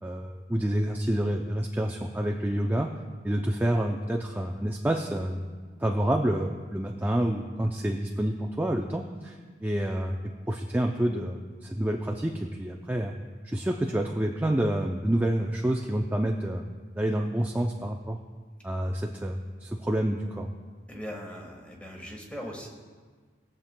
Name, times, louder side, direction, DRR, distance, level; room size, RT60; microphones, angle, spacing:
voice 1, 0.0-2.9 3.2-5.4 5.8-13.1 13.4-16.7 17.0-18.2 18.6-20.5, right 1 dB, 10° right, 1 dB, 0.4 m, -28 dB
voice 2, 20.9-22.7, equal, 5° left, 0 dB, 1.4 m, -39 dB
20.5 x 7.4 x 2.2 m, 1.5 s
head